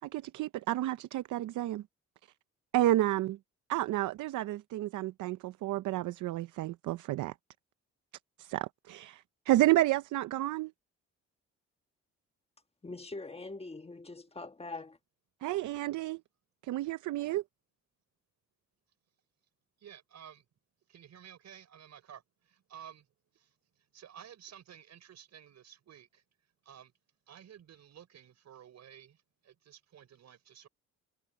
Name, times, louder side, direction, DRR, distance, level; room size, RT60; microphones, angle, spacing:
voice 1, 0.0-1.8 2.7-3.4 3.7-7.3 8.4-10.7 15.4-16.2 16.6-17.4, right 15 dB, 80° right, 0.7 m, -30 dB
voice 2, 12.8-15.0, left 3 dB, 20° left, 1.4 m, -43 dB
voice 3, 19.8-20.5 20.9-23.1 23.3-26.2 26.6-26.9 27.3-30.7, right 9 dB, 60° right, 5.4 m, -53 dB
cardioid pair, 90°, 30 cm